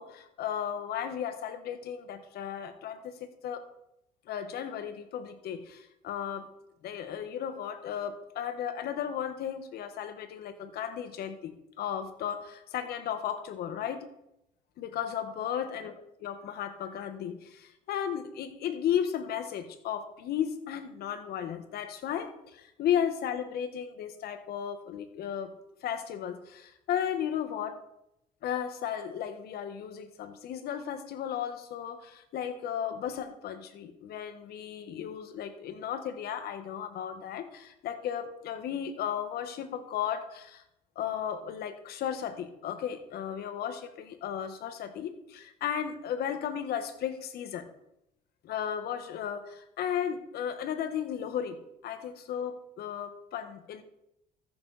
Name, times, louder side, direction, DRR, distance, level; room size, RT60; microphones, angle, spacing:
voice 1, 0.0-3.7 4.3-6.5 6.8-14.1 14.8-15.9 16.2-25.5 25.8-27.8 28.4-40.6 40.9-47.7 48.4-53.8, left 9 dB, 70° left, 9 dB, 1.3 m, -35 dB
14.0 x 6.9 x 4.1 m, 0.81 s
cardioid pair, 110°, 17 cm